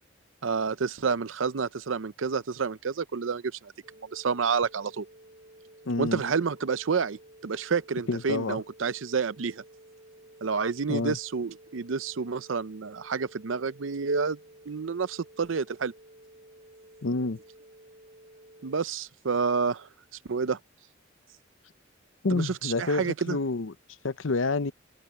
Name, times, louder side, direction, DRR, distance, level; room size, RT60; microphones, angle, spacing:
voice 1, 0.4-3.7 4.1-5.0 6.0-9.6 10.4-14.4 14.7-15.9 18.6-19.9 20.3-20.6 22.3-23.4, right 5 dB, 90° right, 0.6 m, -29 dB
sound 1, 3.8-18.9, right 1 dB, 45° right, 5.0 m, -53 dB
voice 2, 5.9-6.2 8.1-8.6 10.9-11.2 17.0-17.4 22.2-23.7 24.0-24.7, left 3 dB, 80° left, 0.8 m, -28 dB
head